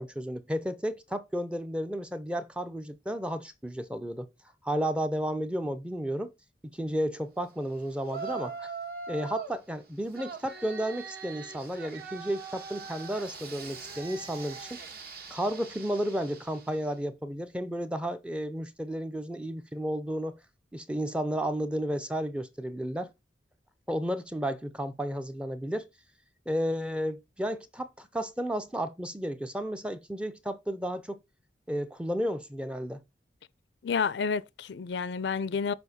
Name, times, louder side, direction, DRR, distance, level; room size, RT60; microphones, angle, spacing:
voice 1, 0.0-4.3 4.6-6.3 6.7-8.7 9.1-14.8 15.3-20.4 20.7-23.1 23.9-25.9 26.5-31.2 31.7-33.0, equal, 5° right, 0.5 m, -32 dB
Yell, 8.0-9.6 10.1-16.9, right 5 dB, 60° right, 1.3 m, -42 dB
voice 2, 33.8-35.7, left 5 dB, 70° left, 0.4 m, -30 dB
6.9 x 4.4 x 4.1 m
head